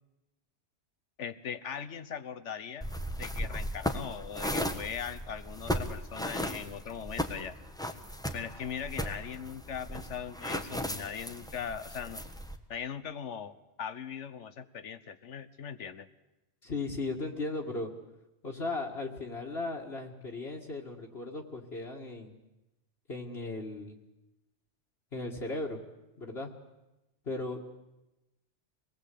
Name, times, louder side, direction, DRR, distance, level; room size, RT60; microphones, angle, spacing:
voice 1, 1.2-2.9 3.2-7.5 8.3-12.2 12.7-16.1, left 7 dB, 80° left, 13 dB, 1.4 m, -40 dB
sound 1, 2.8-12.6, equal, 5° left, 1.4 m, -36 dB
voice 2, 16.6-17.9 18.4-22.4 23.1-24.0 25.1-25.8 26.2-26.5 27.3-27.6, left 2 dB, 60° left, -2 dB, 2.2 m, -36 dB
25.5 x 19.5 x 8.4 m, 0.97 s
omnidirectional pair, 1.2 m